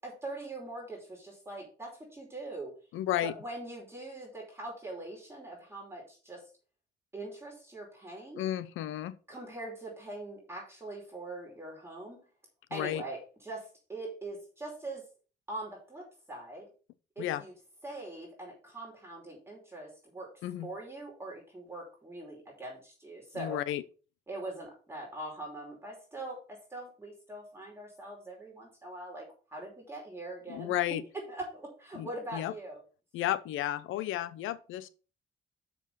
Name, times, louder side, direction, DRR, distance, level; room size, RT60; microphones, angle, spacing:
voice 1, 0.0-2.7 3.2-6.4 7.1-8.4 9.3-12.2 12.7-15.0 15.5-16.7 17.1-17.5 17.8-20.3 20.6-23.6 24.3-31.0 31.3-32.8, right 2 dB, 10° right, 5.1 m, -42 dB
voice 2, 2.9-3.3 8.4-9.2 12.7-13.0 17.2-17.4 20.4-20.7 23.4-23.8 30.5-31.0 31.9-32.5 33.1-34.9, left 12 dB, 85° left, 0.8 m, -33 dB
7.2 x 6.4 x 5.8 m
cardioid pair, 90°, 20 cm